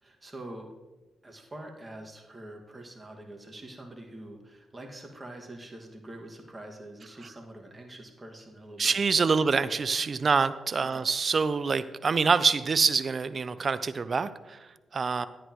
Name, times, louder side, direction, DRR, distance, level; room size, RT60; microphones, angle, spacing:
voice 1, 0.0-0.7 1.2-9.6 10.9-11.0, right 1 dB, 25° right, 2 dB, 2.0 m, -45 dB
voice 2, 8.8-15.3, right 5 dB, 50° right, 14 dB, 0.6 m, -26 dB
11.5 x 10.0 x 3.1 m, 1.2 s
supercardioid pair, 55°, 0 cm